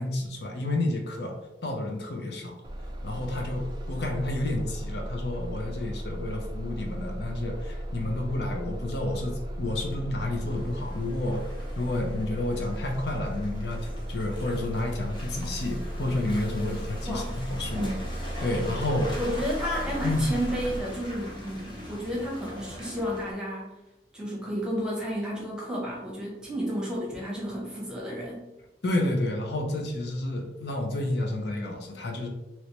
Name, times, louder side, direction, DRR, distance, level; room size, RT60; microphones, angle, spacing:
voice 1, 0.0-1.3 1.6-2.5 3.0-11.5 11.8-17.9 18.4-19.2 20.0-20.2 28.8-32.3, left 2 dB, 70° left, 2 dB, 0.6 m, -30 dB
Bus, 2.6-20.8, right 1 dB, 25° right, 0.3 m, -36 dB
Car passing by / Engine, 10.1-23.3, equal, 25° left, 0.8 m, -42 dB
voice 2, 17.0-17.4 17.7-18.1 19.2-23.7 24.1-28.5, equal, 5° right, -5 dB, 0.9 m, -32 dB
3.2 x 2.9 x 2.9 m, 0.99 s
head